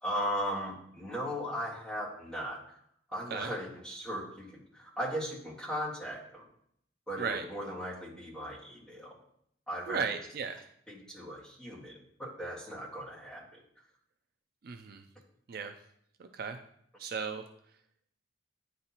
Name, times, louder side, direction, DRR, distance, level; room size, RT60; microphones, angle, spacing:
voice 1, 0.0-2.8 3.1-6.5 7.1-9.2 9.7-10.0 10.9-13.6, equal, 5° left, -6 dB, 1.6 m, -37 dB
voice 2, 9.9-10.7 14.6-15.1 15.5-15.7 16.2-16.6 17.0-17.4, right 5 dB, 50° right, 7 dB, 0.4 m, -35 dB
9.6 x 4.1 x 2.9 m, 0.69 s
head